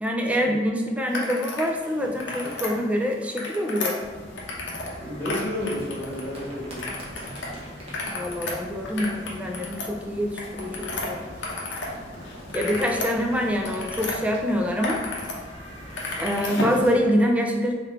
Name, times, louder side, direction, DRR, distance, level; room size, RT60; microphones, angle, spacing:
voice 1, 0.0-4.0 8.1-11.3 12.5-15.0 16.2-17.7, equal, 5° right, 2 dB, 0.4 m, -25 dB
sound 1, 1.1-1.7 2.0-2.7 3.2-4.9 5.2-6.4 6.8-7.5 7.8-11.9 12.2-14.1 14.6-15.3 15.6-16.8, left 2 dB, 65° left, 0.8 m, -32 dB
sound 2, 1.6-3.8 5.2-10.1 10.8-14.7 15.3-17.0, right 1 dB, 30° right, 1.1 m, -46 dB
sound 3, 4.0-16.2, equal, 30° left, 0.8 m, -43 dB
voice 2, 5.0-6.8, left 1 dB, 10° left, -7 dB, 1.4 m, -31 dB
3.7 x 3.3 x 3.4 m, 1.5 s
head